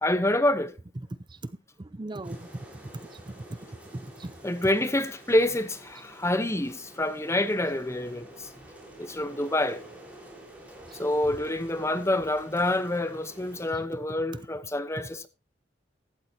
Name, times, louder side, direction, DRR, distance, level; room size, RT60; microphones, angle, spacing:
voice 1, 0.0-0.7 4.4-8.5 9.0-9.8 10.9-15.3, left 1 dB, 15° left, 0.9 m, -27 dB
voice 2, 1.8-3.6 3.9-4.4 10.9-11.0 13.7-14.1 14.3-14.4, right 2 dB, 25° right, 0.6 m, -39 dB
sound 1, 2.2-13.7, right 1 dB, 10° right, 4.4 m, -49 dB
14.5 x 13.0 x 2.9 m
head